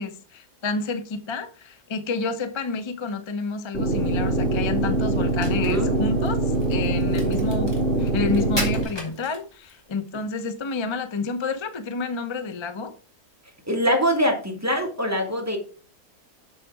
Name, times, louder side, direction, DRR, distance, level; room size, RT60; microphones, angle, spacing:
voice 1, 0.0-6.4 6.7-7.7 8.0-12.9, left 4 dB, 40° left, 0.4 m, -29 dB
sound 1, 3.7-8.8, right 2 dB, 35° right, 1.8 m, -23 dB
Crack, 5.3-9.8, equal, 15° left, 2.8 m, -36 dB
voice 2, 13.7-15.6, equal, 10° right, 1.8 m, -23 dB
7.2 x 6.5 x 4.7 m
omnidirectional pair, 1.7 m